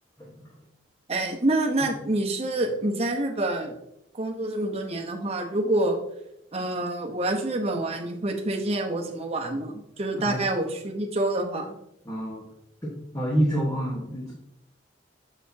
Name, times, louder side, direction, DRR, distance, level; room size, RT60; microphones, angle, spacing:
voice 1, 0.2-0.5 10.2-10.4 12.0-12.5 12.8-14.3, equal, 20° left, -4 dB, 1.2 m, -28 dB
voice 2, 1.1-3.8 4.1-6.0 6.5-9.7 10.0-11.7, right 2 dB, 35° right, 1 dB, 1.0 m, -27 dB
7.0 x 6.6 x 2.8 m, 0.80 s
head